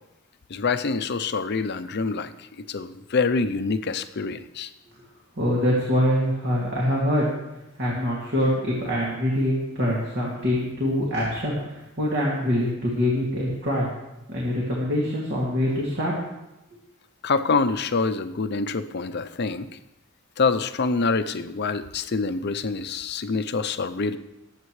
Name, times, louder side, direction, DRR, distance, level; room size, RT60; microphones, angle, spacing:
voice 1, 0.5-4.7 17.2-19.7 20.4-24.2, left 4 dB, 50° left, 10 dB, 0.6 m, -26 dB
voice 2, 5.4-7.3 7.8-13.9 14.3-16.1, equal, 55° right, -4 dB, 2.5 m, -24 dB
21.0 x 8.1 x 3.2 m, 0.94 s
head